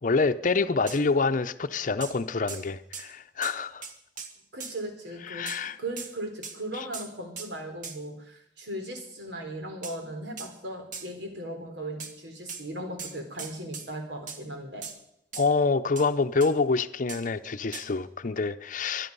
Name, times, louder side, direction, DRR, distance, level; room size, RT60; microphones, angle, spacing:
voice 1, 0.0-3.9 5.3-5.8 6.7-6.9 15.3-19.1, left 4 dB, 50° left, 0.7 m, -26 dB
sound 1, 0.9-1.0 2.0-2.2 2.5-2.7 2.9-3.1 3.4-3.6 3.8-4.8 5.5-5.6 6.0-6.1 6.4-6.6 6.9-7.1 7.4-7.5 7.8-8.0 9.8-10.0 10.4-10.5 10.9-11.1 12.0-12.1 12.5-12.6 13.0-13.9 14.3-14.4 14.8-15.0 15.3-15.5 16.0-16.1 16.4-16.5 17.1-17.2 17.7-17.9, right 5 dB, 50° right, 1.6 m, -39 dB
voice 2, 4.5-5.5 5.8-14.9, right 1 dB, 90° right, 3.7 m, -37 dB
24.0 x 10.5 x 5.4 m
head